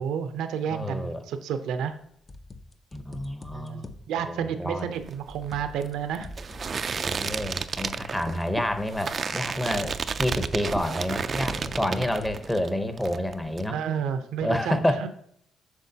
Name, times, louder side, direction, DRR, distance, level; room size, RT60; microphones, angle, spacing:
voice 1, 0.0-2.0 3.5-6.3 9.7-9.9 13.7-15.1, right 8 dB, 85° right, 9 dB, 0.6 m, -31 dB
voice 2, 0.7-1.2 2.9-4.0 4.2-4.9 6.2-6.3 6.8-13.8 14.4-14.9, left 1 dB, 10° left, 8 dB, 0.8 m, -29 dB
sound 1, 2.1-4.1 4.8-5.9 6.2-8.5 9.3-9.7 10.5-11.0 11.5-12.6, left 2 dB, 30° left, 0.6 m, -45 dB
sound 2, 5.0-12.7 13.0-13.6, right 5 dB, 40° right, 0.3 m, -32 dB
8.2 x 5.9 x 2.8 m, 0.67 s
cardioid pair, 90°, 0 cm